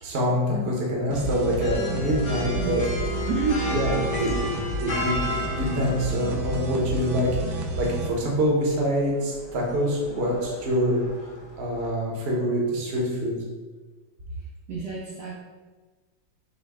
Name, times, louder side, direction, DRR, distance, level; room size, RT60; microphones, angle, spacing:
voice 1, 0.0-2.8 3.7-4.3 4.8-5.2 5.5-11.0 11.6-13.4, equal, 45° right, -2 dB, 0.9 m, -25 dB
sound 1, 1.1-8.1, right 3 dB, 90° right, 1.4 m, -31 dB
sound 2, 1.6-11.9, left 2 dB, 65° left, 1.4 m, -34 dB
voice 2, 3.3-3.7 14.7-15.3, right 4 dB, 70° right, -4 dB, 1.0 m, -28 dB
6.1 x 2.2 x 3.5 m, 1.3 s
omnidirectional pair, 2.1 m